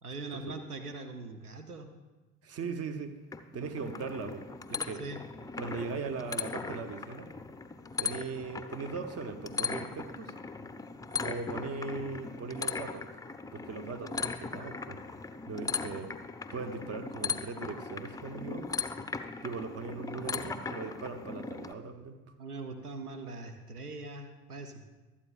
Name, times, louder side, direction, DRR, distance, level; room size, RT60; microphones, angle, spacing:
voice 1, 0.0-1.9 5.0-5.2 22.4-24.8, right 3 dB, 80° right, 7 dB, 0.9 m, -41 dB
voice 2, 2.4-3.2 3.5-5.0 5.5-7.3 8.0-10.3 11.2-13.1 13.5-15.0 15.5-16.2 16.5-18.8 19.4-22.2, right 4 dB, 35° right, 9 dB, 1.0 m, -39 dB
sound 1, 3.3-21.7, left 5 dB, 10° left, 0.6 m, -38 dB
24.0 x 8.6 x 2.4 m, 1.2 s
figure-of-eight pair, 55°, 44 cm